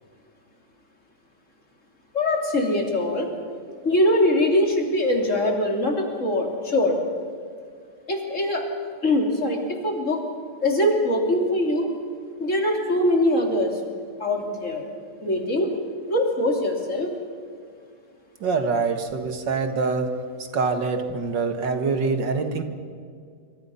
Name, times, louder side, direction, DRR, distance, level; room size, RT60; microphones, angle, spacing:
voice 1, 2.1-3.3 3.8-7.0 8.1-8.6 9.0-10.2 10.6-11.9 12.4-14.8 15.2-15.7 16.1-17.1, left 1 dB, 45° left, 2 dB, 3.4 m, -22 dB
voice 2, 18.4-20.1 20.5-22.6, right 4 dB, 85° right, 7 dB, 2.4 m, -25 dB
26.0 x 24.5 x 5.7 m, 2.1 s
omnidirectional pair, 1.9 m